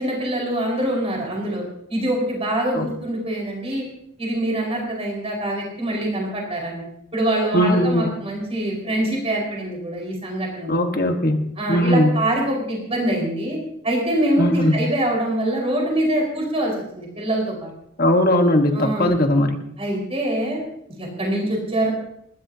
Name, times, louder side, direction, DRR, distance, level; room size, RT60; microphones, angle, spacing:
voice 1, 0.0-1.6 1.9-3.9 4.2-6.8 7.1-10.9 11.6-13.6 13.8-17.7 18.7-19.2 19.8-20.6 21.0-21.9, right 1 dB, 25° right, -1 dB, 5.0 m, -24 dB
voice 2, 7.5-8.1 10.7-12.1 14.4-14.8 18.0-19.6, left 1 dB, 40° left, 4 dB, 1.5 m, -19 dB
29.0 x 12.5 x 2.9 m, 0.73 s
head